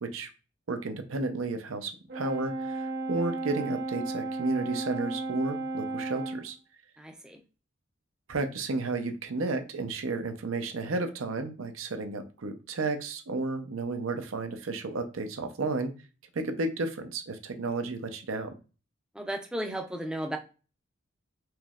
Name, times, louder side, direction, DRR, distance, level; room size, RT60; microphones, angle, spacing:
voice 1, 0.7-6.6 8.3-15.9 16.3-18.5, right 3 dB, 80° right, 7 dB, 0.6 m, -32 dB
Brass instrument, 2.1-6.5, right 2 dB, 55° right, 0.9 m, -34 dB
voice 2, 7.0-7.4 19.2-20.4, right 1 dB, 5° right, 3 dB, 0.5 m, -34 dB
4.5 x 3.0 x 2.4 m, 0.33 s
head